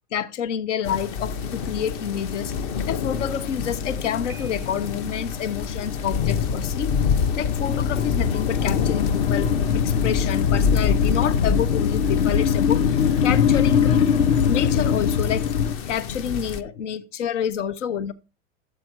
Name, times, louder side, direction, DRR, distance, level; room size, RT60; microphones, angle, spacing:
voice 1, 0.1-2.5 2.9-6.9 7.4-9.5 9.7-12.8 13.2-13.9 14.5-15.5 15.9-18.1, left 8 dB, 85° left, 1.1 m, -28 dB
sound 1, 0.8-16.6, left 6 dB, 35° left, 0.7 m, -28 dB
sound 2, 1.3-15.7, left 7 dB, 60° left, 0.9 m, -24 dB
Piano, 4.3-5.2, right 6 dB, 10° right, 0.6 m, -48 dB
13.0 x 7.8 x 4.6 m
supercardioid pair, 170°, 35 cm